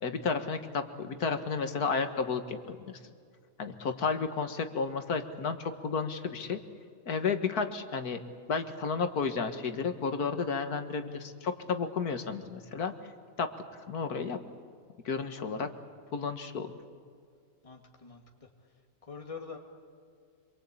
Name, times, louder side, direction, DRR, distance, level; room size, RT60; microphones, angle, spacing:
voice 1, 0.0-3.0 3.6-6.6 7.1-8.2 8.5-12.9 13.4-13.5 13.9-14.4 15.1-15.7 16.1-16.7, left 5 dB, 80° left, 7 dB, 2.0 m, -32 dB
voice 2, 15.3-15.7 16.7-16.8 17.6-18.5 19.1-19.6, left 5 dB, 20° left, 2 dB, 2.3 m, -45 dB
26.5 x 23.0 x 8.5 m, 2.1 s
omnidirectional pair, 1.6 m